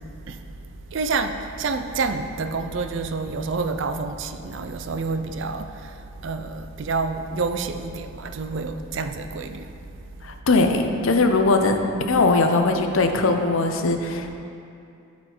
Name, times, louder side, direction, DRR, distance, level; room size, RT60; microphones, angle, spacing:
voice 1, 0.0-9.7, right 4 dB, 60° right, 8 dB, 0.4 m, -28 dB
voice 2, 10.2-11.8 12.1-14.3, left 3 dB, 70° left, 5 dB, 0.6 m, -20 dB
12.0 x 4.3 x 4.4 m, 2.6 s
head